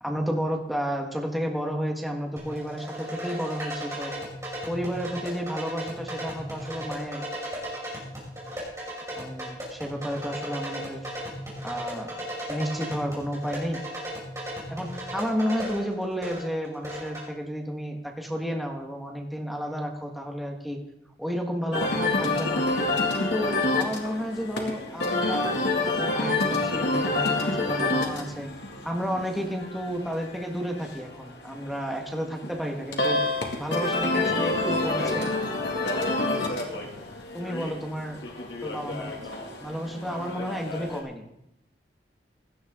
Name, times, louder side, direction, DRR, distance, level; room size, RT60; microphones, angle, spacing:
voice 1, 0.0-4.1 4.7-7.3 9.2-11.1 11.6-12.2 12.5-13.8 14.7-20.8 21.2-22.6 23.1-28.5 28.8-33.3 33.6-35.3 37.3-38.2 38.6-39.2 39.6-41.2, equal, ahead, 0 dB, 1.5 m, -32 dB
sound 1, 2.4-17.2, equal, 15° right, 5.5 m, -36 dB
sound 2, 21.7-41.0, left 2 dB, 80° left, 2.3 m, -28 dB
17.0 x 12.0 x 3.7 m, 0.81 s
head